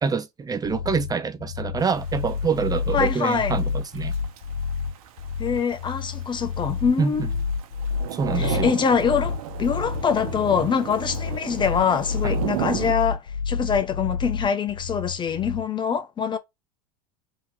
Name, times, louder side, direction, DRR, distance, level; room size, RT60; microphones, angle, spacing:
voice 1, 0.0-3.6 3.9-4.1 7.0-7.3 8.1-8.7 12.2-12.3, right 5 dB, 20° right, 0.6 m, -26 dB
sound 1, 0.6-15.6, left 5 dB, 75° left, 0.5 m, -29 dB
Thunder / Rain, 1.8-12.9, right 11 dB, 65° right, 0.9 m, -35 dB
voice 2, 2.9-3.6 5.4-7.3 8.3-16.4, left 6 dB, 25° left, 0.6 m, -24 dB
3.7 x 2.9 x 4.6 m
hypercardioid pair, 85°, 19 cm